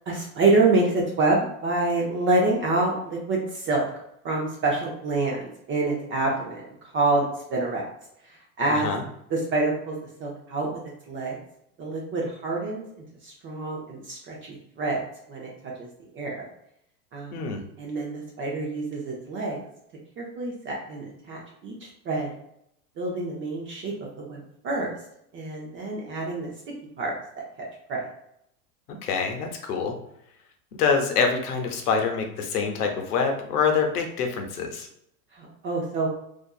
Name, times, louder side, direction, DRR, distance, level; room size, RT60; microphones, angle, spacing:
voice 1, 0.1-3.9 4.2-7.8 8.2-8.9 9.3-9.9 10.2-10.8 11.1-11.4 11.8-12.8 13.2-15.0 15.3-15.5 15.8-15.9 16.1-16.5 17.1-17.4 17.8-19.6 20.2-22.3 23.0-24.9 25.3-26.5 27.0-27.4 27.9-28.0 35.3-36.1, right 2 dB, 30° right, -2 dB, 0.6 m, -27 dB
voice 2, 8.7-9.0 17.3-17.6 29.0-29.9 30.8-34.9, left 5 dB, 85° left, 3 dB, 0.7 m, -25 dB
2.6 x 2.4 x 2.3 m, 0.74 s
hypercardioid pair, 100°, 45 cm